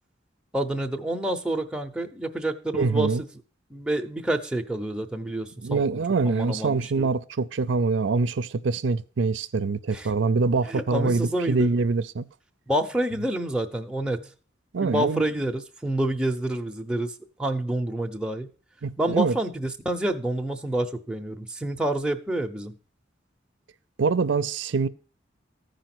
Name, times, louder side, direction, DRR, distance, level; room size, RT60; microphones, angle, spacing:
voice 1, 0.5-3.1 3.7-5.8 6.2-7.1 9.9-10.1 10.7-11.7 12.7-14.3 14.8-17.1 17.4-18.5 19.0-22.7, right 1 dB, 5° right, 0.8 m, -28 dB
voice 2, 2.7-3.2 5.6-12.3 14.7-15.2 18.8-19.4 24.0-24.9, right 4 dB, 70° right, 0.5 m, -24 dB
14.5 x 5.1 x 6.0 m
head